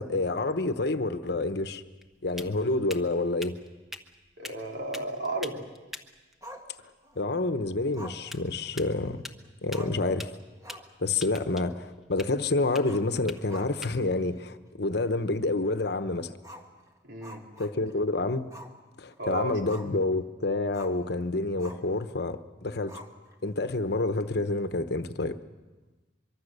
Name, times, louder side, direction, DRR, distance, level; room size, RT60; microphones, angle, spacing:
voice 1, 0.0-1.8 2.2-3.6 7.2-9.2 9.6-10.3 11.0-16.3 17.6-18.5 19.0-23.0 23.4-25.4, left 2 dB, 60° left, 10 dB, 1.0 m, -28 dB
sound 1, 1.8-15.8, left 1 dB, ahead, 1.0 m, -48 dB
voice 2, 4.4-5.6 17.0-17.4 19.2-19.6, right 2 dB, 75° right, 1 dB, 3.0 m, -33 dB
Growling, 6.4-7.2 7.9-9.2 9.4-9.5 9.7-10.1 10.5-11.0 11.3-11.4 12.7-14.0 14.3-14.4 15.0-15.1 16.4-18.0 18.5-18.8 19.1-20.1 20.7-21.0 21.6-22.0 22.9-23.5, equal, 15° right, 1.7 m, -47 dB
24.0 x 23.5 x 6.7 m, 1.2 s
head